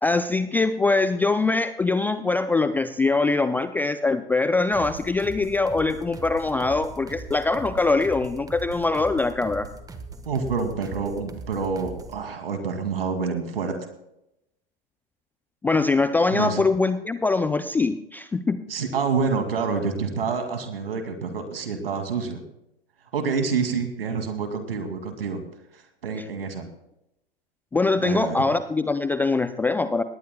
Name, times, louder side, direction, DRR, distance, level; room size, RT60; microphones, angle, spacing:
voice 1, 0.0-9.7 15.6-18.6 27.7-30.0, left 3 dB, 5° left, 12 dB, 0.4 m, -23 dB
sound 1, 4.7-12.2, right 3 dB, 10° right, 1.3 m, -40 dB
voice 2, 10.3-13.8 16.3-16.6 18.7-22.4 23.1-25.4 25.7-26.7 28.0-28.4, right 5 dB, 75° right, 6 dB, 2.5 m, -27 dB
18.5 x 18.5 x 2.3 m, 0.84 s
figure-of-eight pair, 105°, 29 cm